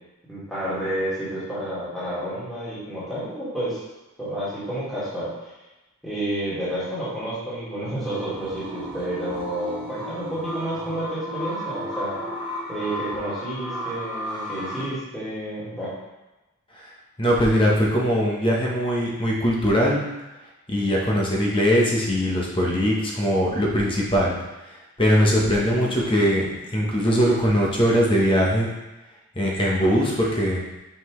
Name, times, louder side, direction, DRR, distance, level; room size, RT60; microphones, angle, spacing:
voice 1, 0.3-3.8 4.2-5.3 6.0-12.2 12.7-15.9, right 1 dB, ahead, -12 dB, 2.0 m, -30 dB
sound 1, 8.0-14.8, left 1 dB, 20° right, 1.4 m, -33 dB
voice 2, 17.2-20.0 20.7-24.3 25.0-28.7 29.4-30.6, equal, 25° left, -3 dB, 1.0 m, -21 dB
5.7 x 5.1 x 3.2 m, 1.0 s
head